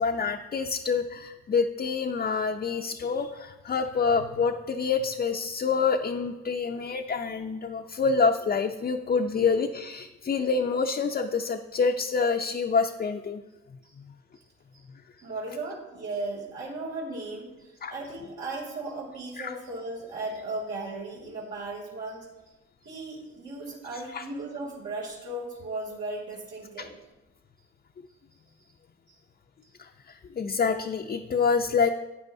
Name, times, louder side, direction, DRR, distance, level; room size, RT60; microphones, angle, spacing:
voice 1, 0.0-13.4 17.8-17.9 19.4-19.5 24.1-24.2 26.8-26.9 29.8-29.9 30.4-31.9, left 5 dB, 30° left, 3 dB, 0.5 m, -27 dB
voice 2, 15.2-22.3 22.8-26.9, right 2 dB, 75° right, -4 dB, 2.8 m, -36 dB
12.0 x 8.9 x 2.7 m, 1.0 s
cardioid pair, 90°, 30 cm